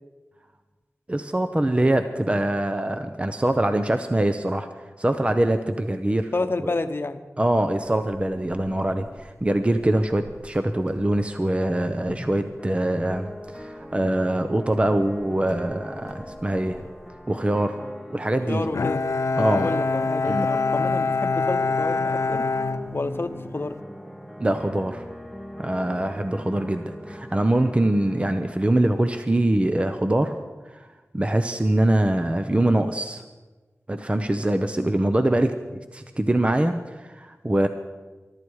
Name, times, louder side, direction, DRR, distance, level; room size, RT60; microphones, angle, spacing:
voice 1, 1.1-4.7 5.0-6.3 6.6-6.8 7.4-16.8 17.3-17.8 18.1-18.6 19.4-19.7 20.2-20.5 24.4-25.0 25.6-30.4 30.7-30.9 31.1-33.2 33.9-35.5 35.9-37.7, right 1 dB, 25° right, 8 dB, 0.8 m, -23 dB
voice 2, 6.3-7.2 18.5-19.0 19.4-22.4 22.9-23.8, left 2 dB, 50° left, 10 dB, 0.9 m, -29 dB
sound 1, 7.8-17.1, right 1 dB, 80° right, 2.9 m, -47 dB
sound 2, 12.6-28.5, equal, 5° right, 1.3 m, -40 dB
Bowed string instrument, 18.7-23.6, left 3 dB, 80° left, 0.5 m, -25 dB
22.5 x 12.5 x 4.8 m, 1.3 s
wide cardioid pair, 80°, 5 cm